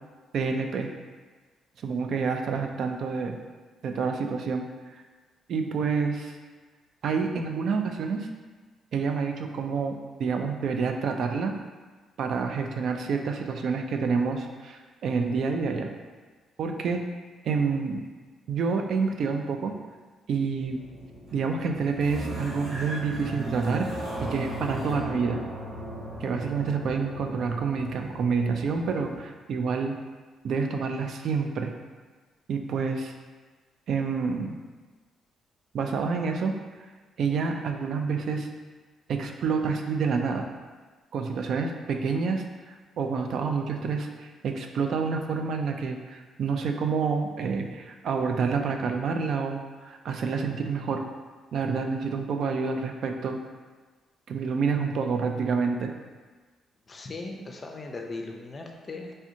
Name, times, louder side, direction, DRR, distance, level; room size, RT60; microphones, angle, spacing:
voice 1, 0.3-0.9 1.8-3.4 3.8-4.6 5.5-6.4 7.0-8.3 8.9-11.5 12.2-15.9 16.6-17.0 17.4-18.0 18.5-19.7 20.3-20.8 21.3-23.9 24.2-25.4 26.2-30.0 30.4-31.7 32.5-33.1 33.9-34.6 35.7-36.5 37.2-38.5 39.1-40.5 41.1-42.4 43.0-51.0 51.5-53.4 54.3-55.9, right 5 dB, 65° right, 4 dB, 0.3 m, -28 dB
sound 1, 20.6-29.2, right 1 dB, 85° right, 1.5 m, -37 dB
voice 2, 56.9-59.1, left 3 dB, 35° left, 2 dB, 0.4 m, -38 dB
3.3 x 2.7 x 2.6 m, 1.4 s
cardioid pair, 90°, 0 cm